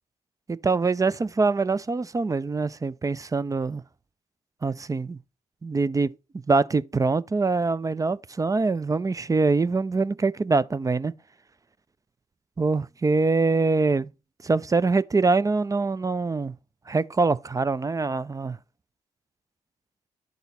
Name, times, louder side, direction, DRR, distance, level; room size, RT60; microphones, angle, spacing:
voice 1, 0.5-3.8 4.6-5.2 5.6-6.1 6.5-11.1 12.6-14.1 14.4-16.5 16.9-18.6, right 3 dB, 20° right, 0.4 m, -24 dB
10.5 x 4.0 x 4.1 m
hypercardioid pair, 40°, 16 cm